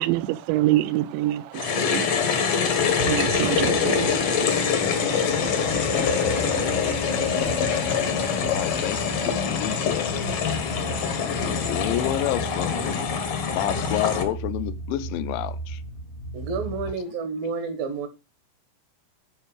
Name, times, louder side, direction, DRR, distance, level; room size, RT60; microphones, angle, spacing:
voice 1, 0.0-2.1 3.0-4.1, right 15 dB, 80° right, 2.8 m, -25 dB
Water Bottle Filling, 1.5-14.2, left 6 dB, 60° left, 1.5 m, -24 dB
sound 1, 2.5-12.0, right 1 dB, 25° right, 1.1 m, -39 dB
sound 2, 5.4-16.9, right 3 dB, 40° left, 0.8 m, -37 dB
voice 2, 8.5-10.1 11.3-13.1 13.5-15.8, left 14 dB, 80° left, 2.9 m, -30 dB
voice 3, 16.3-18.1, right 4 dB, 65° right, 2.5 m, -30 dB
11.0 x 4.9 x 8.0 m
omnidirectional pair, 5.6 m